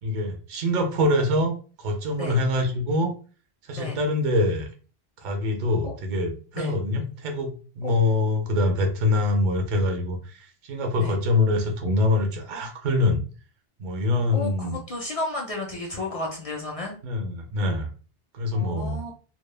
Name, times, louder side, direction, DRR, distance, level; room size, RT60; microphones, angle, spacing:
voice 1, 0.0-1.5 1.8-3.1 3.7-4.7 5.2-13.2 13.8-14.8 17.0-17.9 18.3-19.0, left 2 dB, 55° right, 4 dB, 0.7 m, -24 dB
voice 2, 14.3-17.0 18.5-19.1, left 2 dB, 50° left, 0 dB, 0.4 m, -32 dB
2.1 x 2.1 x 3.1 m, 0.38 s
omnidirectional pair, 1.0 m